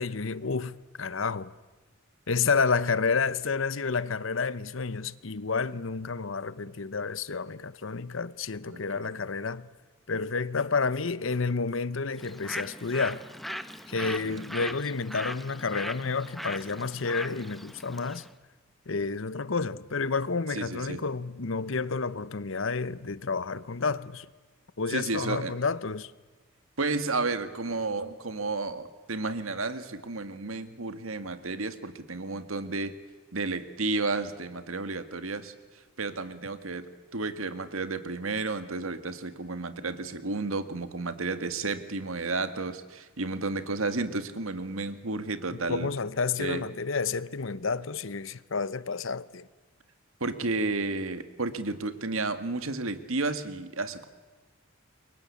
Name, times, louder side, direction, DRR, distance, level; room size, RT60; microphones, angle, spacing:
voice 1, 0.0-1.5 2.3-9.7 10.1-13.2 13.9-18.2 18.9-24.3 24.8-26.1 45.7-49.5, left 4 dB, 65° left, 0.9 m, -30 dB
voice 2, 8.7-9.2 14.0-14.7 20.5-21.0 24.9-25.5 26.8-32.9 33.3-35.5 36.0-36.9 37.1-45.9 46.4-46.6 50.2-54.1, right 3 dB, 80° right, 1.9 m, -32 dB
Bird, 12.2-18.3, equal, ahead, 1.0 m, -39 dB
29.0 x 23.0 x 8.5 m
head